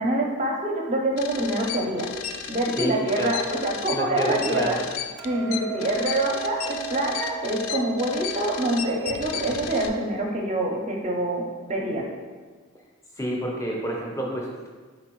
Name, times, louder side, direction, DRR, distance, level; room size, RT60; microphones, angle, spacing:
voice 1, 0.0-2.1 2.5-4.8 5.2-11.4 11.7-12.0, right 1 dB, 30° right, 0 dB, 0.5 m, -26 dB
sound 1, 1.2-9.9, left 9 dB, 80° left, 0.3 m, -34 dB
voice 2, 2.8-3.3 3.9-4.8 13.2-14.7, equal, 15° left, -1 dB, 0.6 m, -29 dB
Hammer, 5.2-11.4, right 7 dB, 90° right, 0.4 m, -38 dB
4.4 x 3.8 x 3.0 m, 1.4 s
head